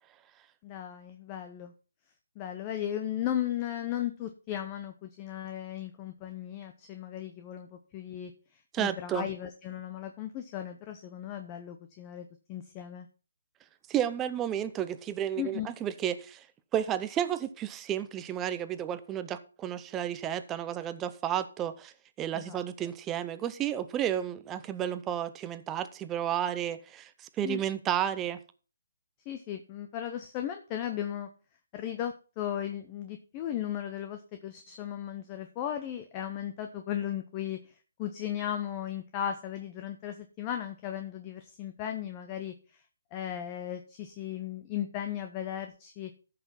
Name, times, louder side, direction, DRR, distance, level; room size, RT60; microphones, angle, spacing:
voice 1, 0.6-1.7 2.4-8.3 8.8-13.1 15.4-15.7 22.3-22.6 27.4-27.6 29.3-31.3 31.7-42.8 43.1-46.1, left 10 dB, 25° left, 7 dB, 0.7 m, -36 dB
voice 2, 8.7-9.3 13.9-16.4 16.7-21.9 22.2-27.1 27.4-28.4, right 10 dB, 15° right, 12 dB, 0.6 m, -32 dB
13.5 x 5.9 x 4.1 m, 0.36 s
hypercardioid pair, 160°, 0 cm